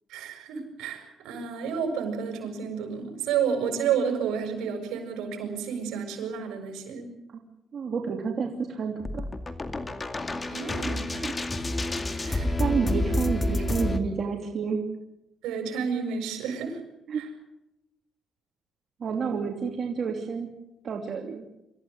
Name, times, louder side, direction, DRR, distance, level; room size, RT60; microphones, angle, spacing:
voice 1, 0.1-7.1 10.5-11.1 12.2-12.5 15.4-16.8 17.1-17.3, right 7 dB, 85° right, 3 dB, 6.9 m, -30 dB
voice 2, 7.7-9.3 12.6-14.8 17.1-17.2 19.0-20.5 20.8-21.4, right 5 dB, 55° right, 2 dB, 2.9 m, -29 dB
sound 1, 9.0-14.0, left 1 dB, 25° left, 2.3 m, -29 dB
26.5 x 14.5 x 9.4 m, 0.90 s
cardioid pair, 90°, 0 cm